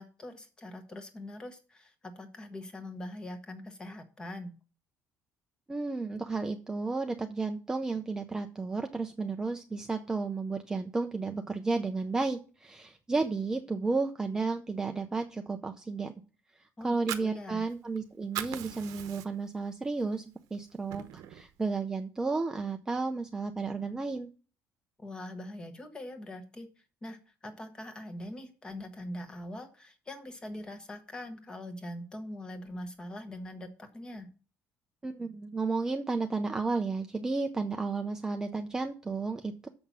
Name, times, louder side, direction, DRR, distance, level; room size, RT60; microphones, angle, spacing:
voice 1, 0.0-4.5 16.8-17.6 25.0-26.7 27.0-34.3, left 1 dB, 15° left, 7 dB, 1.1 m, -42 dB
voice 2, 5.7-16.1 16.8-20.2 20.5-24.3 35.0-39.7, right 3 dB, 10° right, 5 dB, 0.5 m, -32 dB
Fire, 16.8-18.0 18.2-19.6 20.0-20.1 20.5-21.5, right 12 dB, 85° right, 0.9 m, -39 dB
6.9 x 5.7 x 7.3 m, 0.36 s
cardioid pair, 180°, 6 cm